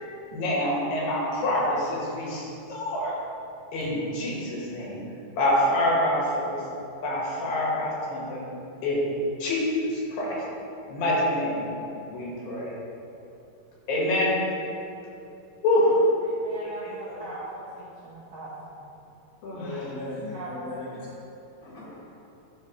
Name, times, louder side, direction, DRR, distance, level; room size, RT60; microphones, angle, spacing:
voice 1, 0.3-3.2 3.7-5.0 5.4-6.6 7.0-8.4 8.8-9.0 9.4-10.4 10.9-11.7 12.1-12.7 13.9-14.4 15.6-16.0 16.6-16.7 19.4-19.9, left 1 dB, 85° left, 3.4 m, -26 dB
voice 2, 16.3-18.8 20.3-20.6, right 2 dB, 80° right, 1.1 m, -40 dB
voice 3, 19.5-21.1 21.6-22.0, left 2 dB, 45° left, 2.0 m, -37 dB
12.0 x 4.7 x 3.2 m
omnidirectional pair, 4.0 m